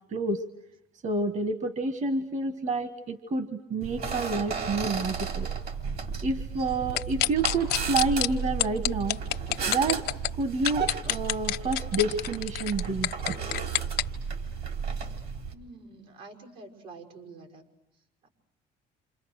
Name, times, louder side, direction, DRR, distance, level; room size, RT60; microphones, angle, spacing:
voice 1, 0.1-0.4 1.0-5.5 6.2-9.2 9.7-10.0 10.4-13.1, right 3 dB, 45° right, 10 dB, 1.4 m, -29 dB
sound 1, 3.8-15.5, right 6 dB, 65° right, 3.4 m, -34 dB
sound 2, 7.0-8.3 8.6-10.3 10.7-14.0, left 16 dB, 90° left, 1.0 m, -26 dB
voice 2, 15.5-17.7 18.2-18.3, right 3 dB, 90° right, 0 dB, 5.8 m, -47 dB
29.0 x 27.5 x 6.5 m, 0.86 s
cardioid pair, 110°, 17 cm